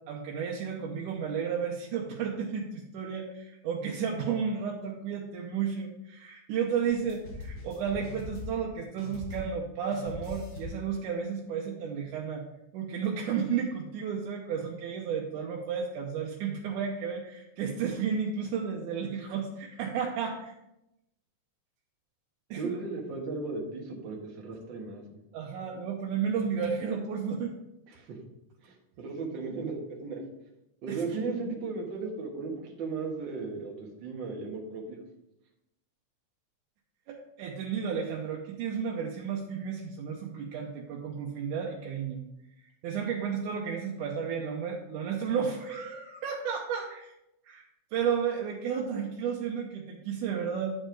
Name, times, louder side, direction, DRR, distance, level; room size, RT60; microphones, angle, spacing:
voice 1, 0.1-12.4 12.7-20.6 22.5-22.8 25.3-27.5 30.9-31.0 37.1-42.2 42.6-47.1 47.4-47.6 47.9-50.8, right 7 dB, 90° right, -1 dB, 2.3 m, -32 dB
sound 1, 6.8-8.7 9.0-9.7 9.9-10.9, left 2 dB, 45° left, 2.1 m, -41 dB
voice 2, 22.6-25.2 27.9-28.2 28.6-30.2 30.8-35.0, right 4 dB, 45° right, 0 dB, 1.8 m, -36 dB
10.5 x 4.5 x 4.6 m, 0.86 s
omnidirectional pair, 3.5 m